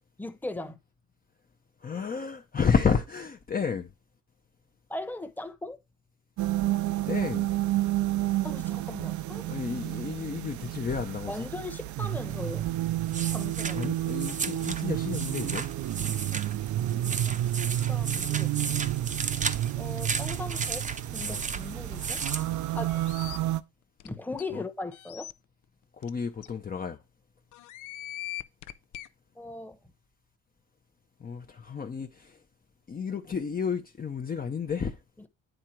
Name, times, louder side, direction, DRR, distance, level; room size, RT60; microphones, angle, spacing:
voice 1, 0.2-0.8 4.9-5.8 8.4-9.5 11.3-12.7 13.3-13.9 16.3-16.4 16.8-18.5 19.8-22.2 22.7-23.0 24.0-25.3 29.4-29.8 35.2-35.3, left 2 dB, 5° left, 1.0 m, -39 dB
voice 2, 1.8-3.9 7.1-7.5 9.5-11.5 13.7-15.7 21.2-21.5 24.5-24.6 26.0-27.0 31.2-32.4 32.9-35.0, left 6 dB, 30° left, 0.7 m, -31 dB
sound 1, 6.4-23.6, right 14 dB, 70° right, 0.5 m, -30 dB
sound 2, 12.3-23.3, right 5 dB, 25° right, 0.6 m, -36 dB
sound 3, 22.9-23.4 24.0-24.1 24.4-24.5 24.9-25.3 26.0-26.1 26.4-26.5 27.5-29.1, left 14 dB, 80° left, 0.6 m, -40 dB
9.0 x 3.7 x 4.5 m
cardioid pair, 90°, 30 cm